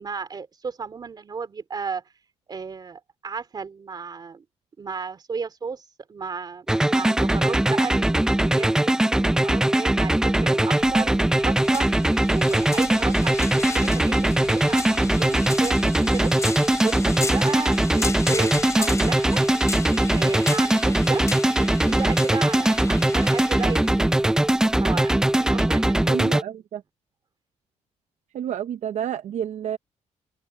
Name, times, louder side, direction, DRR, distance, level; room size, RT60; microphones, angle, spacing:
voice 1, 0.0-2.0 2.5-4.4 4.8-8.8 9.1-11.9 12.3-13.5 13.7-19.4 20.1-21.2 21.5-24.1 24.8-26.3, right 5 dB, 35° right, 3.0 m, -34 dB
sound 1, 6.7-26.4, right 1 dB, 5° right, 0.4 m, -21 dB
sound 2, 10.8-16.4, left 10 dB, 80° left, 2.1 m, -47 dB
sound 3, 10.8-25.4, left 4 dB, 25° left, 3.5 m, -36 dB
voice 2, 26.1-26.8 28.3-29.8, right 10 dB, 70° right, 0.8 m, -30 dB
open air
cardioid pair, 150°, 13 cm